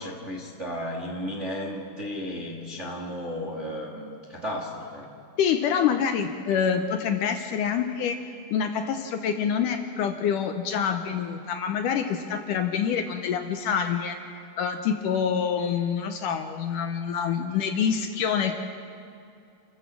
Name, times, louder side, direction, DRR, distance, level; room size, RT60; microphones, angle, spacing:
voice 1, 0.0-5.1, equal, 30° right, 0 dB, 1.3 m, -34 dB
voice 2, 5.4-8.2 8.5-14.2 14.6-18.6, left 7 dB, 70° left, 6 dB, 2.1 m, -26 dB
29.0 x 13.0 x 7.5 m, 2.5 s
omnidirectional pair, 4.3 m